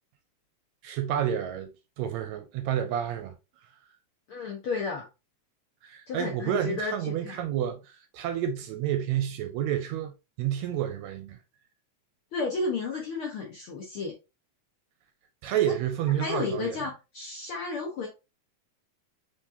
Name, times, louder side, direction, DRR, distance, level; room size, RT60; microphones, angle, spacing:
voice 1, 0.8-3.4 5.8-11.4 15.4-16.8, right 10 dB, 80° right, 1.7 m, -30 dB
voice 2, 4.3-5.0 6.1-7.3 12.3-14.1 15.7-15.8 16.2-18.1, left 4 dB, 70° left, 1.3 m, -32 dB
4.7 x 3.6 x 2.7 m
omnidirectional pair, 3.5 m